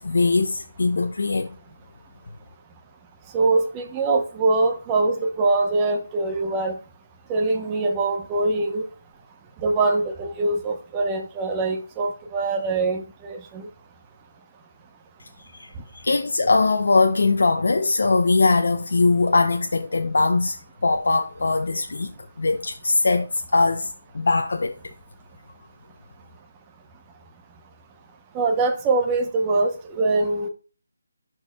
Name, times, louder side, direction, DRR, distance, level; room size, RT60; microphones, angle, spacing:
voice 1, 0.0-1.5 15.5-15.7 15.9-20.6 20.8-22.1 22.4-24.8, left 3 dB, 60° left, 0.7 m, -21 dB
voice 2, 3.3-6.7 7.3-8.8 9.6-13.7 28.3-30.5, right 3 dB, 15° right, 0.8 m, -23 dB
12.0 x 4.5 x 2.3 m
figure-of-eight pair, 170°, 0 cm